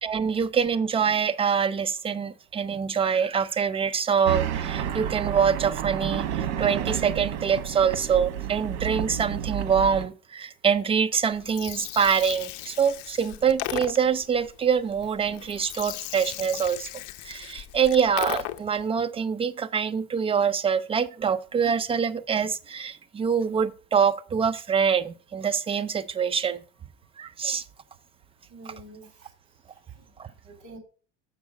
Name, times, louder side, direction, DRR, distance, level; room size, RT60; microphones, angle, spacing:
voice 1, 0.0-16.9 17.2-26.6 27.2-27.6 30.2-30.3, right 7 dB, 15° right, 0.4 m, -25 dB
sound 1, 4.3-10.1, right 10 dB, 80° right, 1.1 m, -30 dB
Gurgling, 11.3-18.8, left 15 dB, 55° left, 0.7 m, -37 dB
voice 2, 28.5-29.3 29.9-30.2 30.4-30.8, right 2 dB, 55° right, 3.1 m, -47 dB
7.2 x 5.9 x 4.8 m
supercardioid pair, 115°, 36 cm